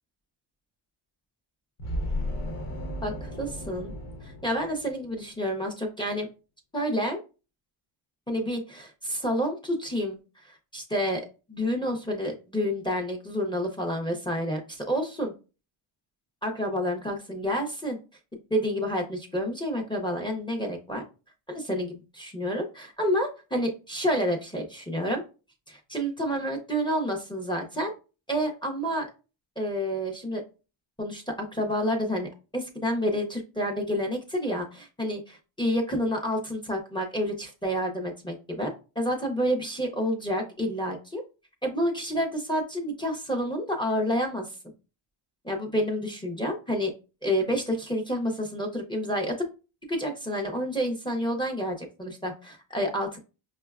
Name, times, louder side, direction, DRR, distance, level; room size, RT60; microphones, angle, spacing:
sound 1, 1.8-5.3, left 1 dB, 85° left, 1.0 m, -34 dB
voice 1, 3.0-3.9 4.2-6.3 6.7-7.2 8.3-10.2 10.5-15.3 16.4-18.0 18.5-21.0 21.5-25.2 25.7-27.9 28.3-29.1 29.6-30.4 31.0-31.2 31.5-38.7 39.0-41.2 41.6-44.5 45.4-46.9 47.2-49.5 49.9-53.2, equal, 10° left, 2 dB, 0.4 m, -29 dB
5.2 x 2.2 x 2.3 m, 0.32 s
cardioid pair, 145°, 49 cm